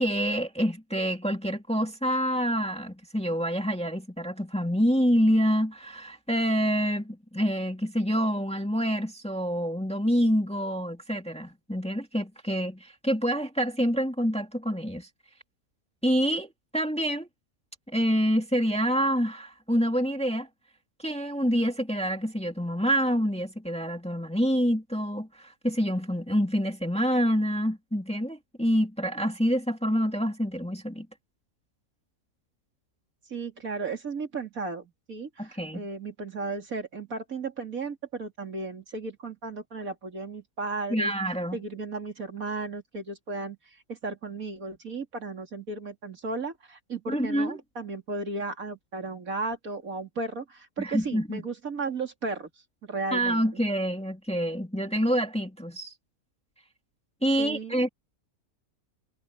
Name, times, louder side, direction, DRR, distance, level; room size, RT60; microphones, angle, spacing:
voice 1, 0.0-15.1 16.0-17.3 17.9-20.5 21.0-31.1 35.4-35.9 40.9-41.6 47.1-47.6 50.8-51.4 53.1-55.9 57.2-57.9, equal, 5° left, 2.2 m, -27 dB
voice 2, 33.3-41.1 41.5-43.6 43.9-52.5 52.8-53.4 57.4-57.9, right 3 dB, 65° right, 3.5 m, -35 dB
omnidirectional pair, 1.6 m